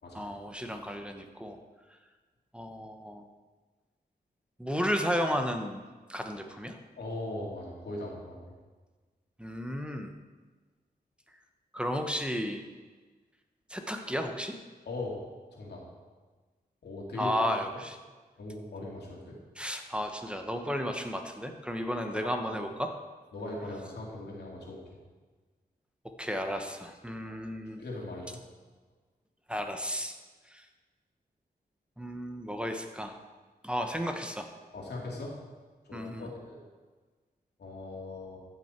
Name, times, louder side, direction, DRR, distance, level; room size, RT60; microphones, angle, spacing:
voice 1, 0.1-1.6 2.5-3.2 4.6-6.8 9.4-10.1 11.7-12.6 13.7-14.6 17.2-18.0 19.6-22.9 26.2-27.8 29.5-30.1 30.5-30.6 32.0-33.2 33.6-34.5 35.9-36.3, equal, 5° right, 4 dB, 1.0 m, -33 dB
voice 2, 7.0-8.5 14.8-15.2 15.5-15.8 16.8-17.3 17.7-17.8 18.4-19.4 21.9-22.6 23.3-24.8 27.2-27.3 27.8-28.4 34.7-35.3 35.8-36.7 37.6-38.4, left 2 dB, 90° left, -2 dB, 2.6 m, -39 dB
14.5 x 6.4 x 4.5 m, 1.3 s
wide cardioid pair, 80°, 17 cm